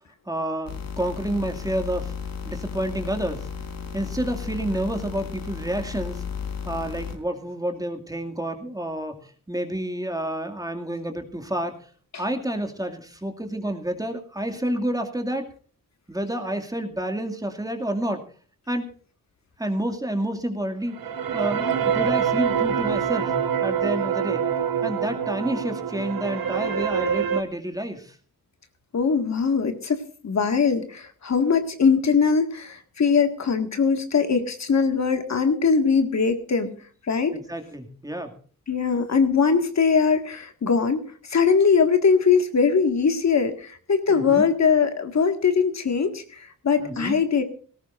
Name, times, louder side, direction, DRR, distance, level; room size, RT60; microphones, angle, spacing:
voice 1, 0.3-2.1 2.4-3.5 3.9-6.2 6.6-11.8 12.2-15.5 16.1-18.2 18.7-18.9 19.6-21.0 21.3-23.3 23.6-24.5 24.8-28.2 37.3-38.4 44.1-44.5 46.8-47.2, right 1 dB, 10° right, 4 dB, 2.3 m, -29 dB
sound 1, 0.7-7.2, left 6 dB, 85° left, 3.9 m, -34 dB
sound 2, 20.9-27.4, right 8 dB, 80° right, 1.9 m, -25 dB
voice 2, 28.9-36.7 37.1-37.3 38.7-47.4, left 5 dB, 50° left, 7 dB, 1.9 m, -21 dB
19.0 x 18.0 x 2.5 m, 0.42 s
wide cardioid pair, 140°, 34 cm